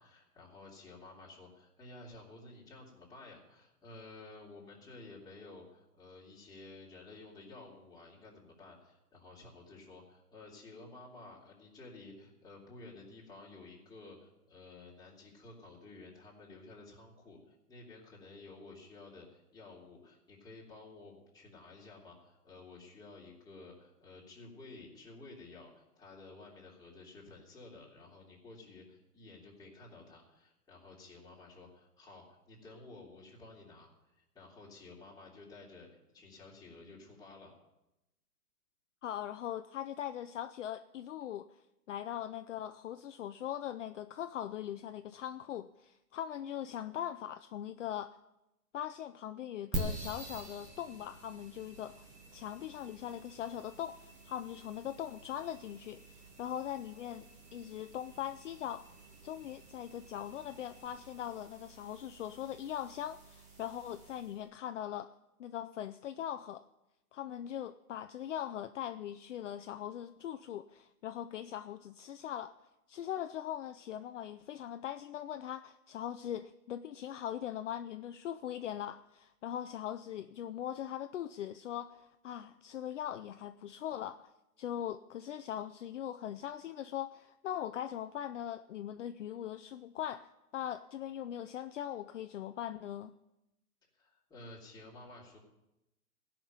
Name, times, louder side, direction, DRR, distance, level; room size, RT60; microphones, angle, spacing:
voice 1, 0.0-37.5 93.9-95.4, left 2 dB, 10° left, 3.1 m, -53 dB
voice 2, 39.0-48.2 48.7-58.9 59.2-65.1 65.4-66.6 67.1-72.6 72.9-84.3 84.6-90.3 90.5-93.1, left 10 dB, 50° left, 0.6 m, -41 dB
sound 1, 49.7-64.4, right 1 dB, 15° right, 1.7 m, -47 dB
15.5 x 6.0 x 9.1 m
hypercardioid pair, 135°, 46 cm